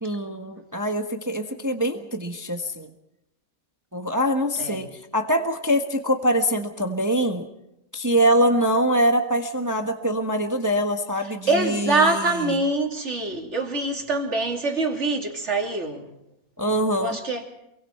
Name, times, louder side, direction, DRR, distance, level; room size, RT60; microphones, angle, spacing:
voice 1, 0.0-2.9 3.9-7.5 7.9-12.5 16.6-17.2, equal, 15° right, 1.3 m, -24 dB
voice 2, 4.6-4.9 11.5-16.1 17.0-17.4, right 2 dB, 50° right, 3.1 m, -24 dB
27.5 x 23.0 x 4.4 m
omnidirectional pair, 1.5 m